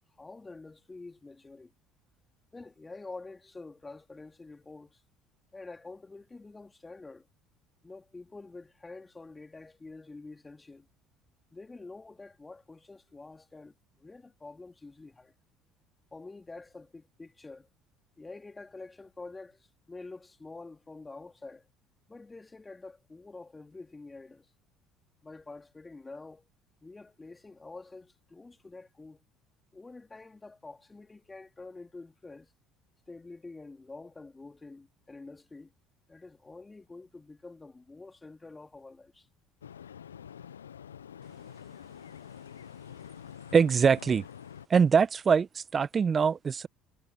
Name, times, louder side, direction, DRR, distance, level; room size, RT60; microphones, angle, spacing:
voice 1, 0.2-1.7 2.5-5.0 5.5-7.3 7.8-10.9 11.5-15.3 16.1-17.7 18.2-21.7 22.1-24.5 25.2-26.5 26.8-29.2 29.7-32.5 33.1-35.7 36.1-39.3, left 3 dB, 20° left, 3.9 m, -47 dB
sound 1, 39.6-44.7, left 8 dB, 85° left, 1.1 m, -46 dB
voice 2, 43.5-44.2 44.7-46.7, right 6 dB, 35° right, 1.1 m, -23 dB
hypercardioid pair, 60°, 0 cm